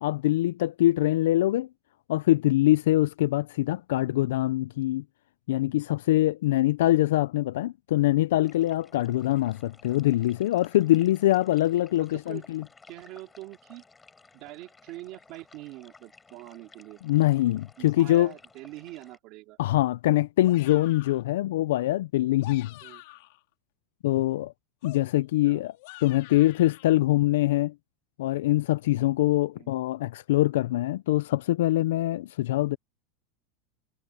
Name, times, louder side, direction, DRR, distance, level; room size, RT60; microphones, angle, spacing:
voice 1, 0.0-1.7 2.1-5.0 5.5-12.6 17.0-18.3 19.6-22.7 24.0-24.5 24.8-25.7 26.0-27.7 28.2-32.8, left 15 dB, 80° left, 0.4 m, -24 dB
sound 1, 8.4-19.2, left 4 dB, 10° left, 5.7 m, -56 dB
voice 2, 12.1-12.4 12.9-13.8 14.3-17.0 17.8-19.6 22.8-23.0 25.4-25.6 29.6-29.7, right 18 dB, 40° right, 2.4 m, -44 dB
sound 2, 20.4-21.3 22.2-23.4 24.8-26.9, left 21 dB, 55° left, 3.0 m, -47 dB
supercardioid pair, 175°, 0 cm